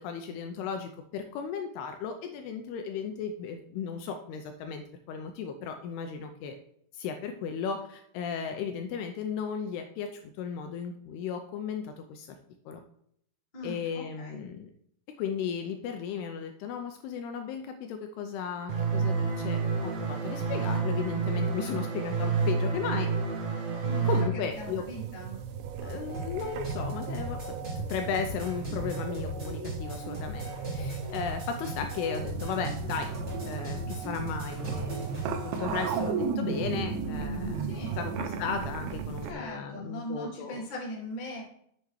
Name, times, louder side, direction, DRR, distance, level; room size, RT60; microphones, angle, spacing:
voice 1, 0.0-6.6 6.9-12.4 12.7-12.8 13.6-14.7 15.2-23.1 24.0-24.8 25.8-27.6 27.9-33.1 33.5-37.7 38.0-40.6, left 6 dB, 85° left, 6 dB, 2.4 m, -35 dB
voice 2, 13.5-14.4 23.8-25.4 37.6-38.2 39.3-41.4, left 1 dB, 35° left, -5 dB, 0.7 m, -40 dB
sound 1, 18.7-24.3, right 5 dB, 60° right, 2.0 m, -29 dB
sound 2, 24.5-39.3, right 6 dB, 80° right, 2.5 m, -36 dB
sound 3, 25.8-36.1, right 1 dB, 35° right, 1.0 m, -37 dB
7.9 x 7.0 x 3.2 m, 0.69 s
omnidirectional pair, 5.1 m